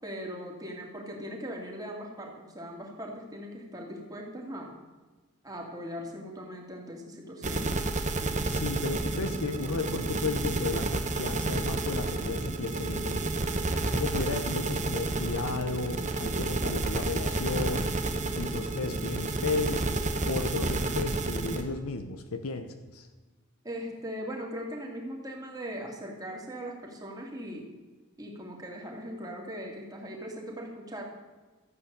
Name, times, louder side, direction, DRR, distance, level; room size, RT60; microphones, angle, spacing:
voice 1, 0.0-4.7 5.4-7.7 23.6-27.7 28.2-31.0, equal, 15° right, 0 dB, 2.6 m, -39 dB
sound 1, 7.4-21.6, right 2 dB, 35° right, 1.2 m, -30 dB
voice 2, 8.4-13.2 13.9-17.9 18.3-19.8 20.3-23.1, left 3 dB, 85° left, 7 dB, 1.0 m, -34 dB
14.0 x 8.7 x 6.8 m, 1.3 s
head